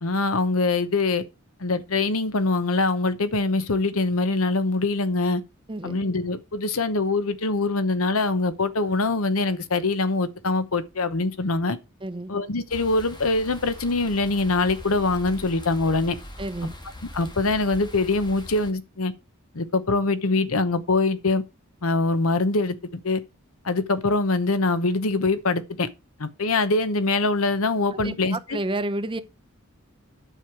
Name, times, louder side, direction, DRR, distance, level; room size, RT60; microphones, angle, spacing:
voice 1, 0.0-1.2 1.6-5.4 5.8-11.8 12.3-16.2 17.1-19.1 19.5-21.4 21.8-23.2 23.6-25.9 26.2-28.6, left 3 dB, 75° left, 0.9 m, -23 dB
voice 2, 5.7-6.0 12.0-12.3 16.4-16.8 27.9-29.2, right 2 dB, 25° right, 0.7 m, -30 dB
sound 1, 12.7-18.7, left 1 dB, 20° left, 1.6 m, -41 dB
9.1 x 6.5 x 4.6 m
head